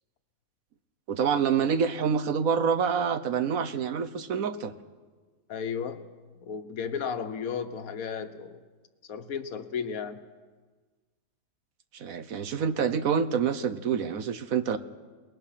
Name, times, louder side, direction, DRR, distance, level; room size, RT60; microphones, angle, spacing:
voice 1, 1.1-4.7 11.9-14.8, right 7 dB, 65° right, 11 dB, 1.2 m, -27 dB
voice 2, 5.5-6.1 6.4-8.6 9.1-10.2, left 6 dB, 65° left, 9 dB, 1.5 m, -34 dB
28.0 x 20.0 x 5.8 m, 1.4 s
omnidirectional pair, 1.7 m